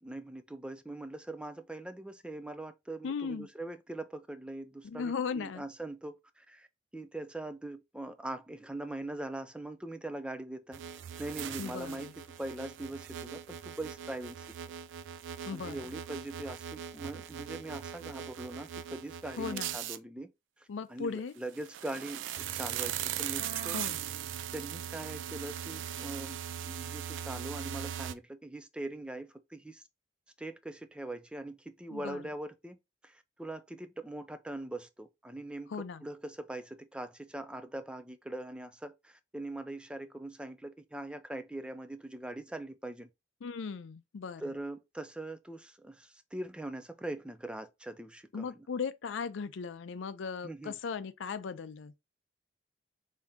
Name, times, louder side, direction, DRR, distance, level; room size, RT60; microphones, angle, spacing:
voice 1, 0.0-6.7 6.9-10.8 11.2-12.1 12.4-14.5 15.5-20.3 20.6-23.8 24.5-29.8 30.4-32.8 33.0-43.1 44.4-48.7 50.4-50.7, right 1 dB, 5° right, 0.3 m, -42 dB
voice 2, 3.0-3.5 4.8-5.6 11.6-12.1 15.5-15.8 19.4-19.7 20.7-21.3 23.7-24.0 31.9-32.2 35.7-36.0 43.4-44.5 48.3-51.9, left 5 dB, 85° left, 0.4 m, -37 dB
sound 1, 10.7-20.0 21.5-28.1, right 9 dB, 80° right, 0.3 m, -40 dB
3.5 x 2.7 x 3.4 m
head